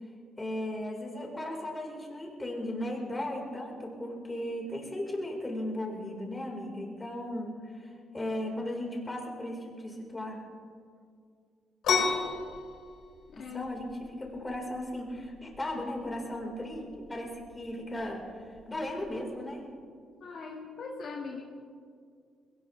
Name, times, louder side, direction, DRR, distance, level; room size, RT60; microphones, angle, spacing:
voice 1, 0.4-10.4 13.4-16.8 17.1-18.3 18.7-19.7, left 1 dB, 20° left, -1 dB, 4.3 m, -36 dB
sound 1, 11.8-19.2, left 5 dB, 80° left, 2.9 m, -35 dB
voice 2, 13.3-13.7 20.2-21.4, left 4 dB, 60° left, -1 dB, 1.8 m, -40 dB
21.0 x 18.5 x 3.3 m, 2.2 s
cardioid pair, 90°, 0 cm